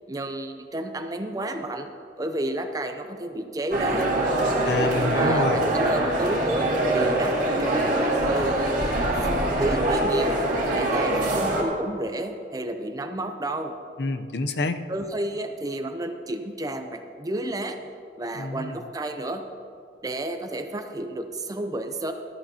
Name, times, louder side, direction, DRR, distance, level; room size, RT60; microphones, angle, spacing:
voice 1, 0.1-1.9 2.2-4.1 5.1-8.5 9.0-10.4 10.7-13.7 14.9-17.8 18.2-19.4 20.0-22.1, right 1 dB, 20° right, 7 dB, 0.5 m, -31 dB
sound 1, 3.7-11.6, right 1 dB, 50° right, 2.1 m, -23 dB
voice 2, 4.7-5.6 14.0-14.8 18.3-18.8, left 3 dB, 65° left, 8 dB, 0.6 m, -27 dB
15.0 x 12.5 x 2.8 m, 2.4 s
head